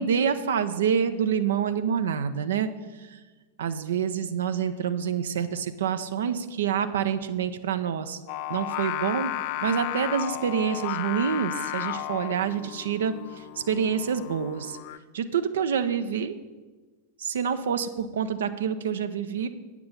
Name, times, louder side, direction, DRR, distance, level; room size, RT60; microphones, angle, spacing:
voice 1, 0.0-2.7 3.1-3.2 3.6-8.2 8.5-9.3 9.6-14.8 15.1-16.4 17.2-19.5, right 7 dB, 60° right, 10 dB, 0.6 m, -27 dB
Singing, 8.3-15.0, left 15 dB, 45° left, 0.3 m, -34 dB
8.6 x 6.0 x 8.2 m, 1.3 s
figure-of-eight pair, 90°, 0 cm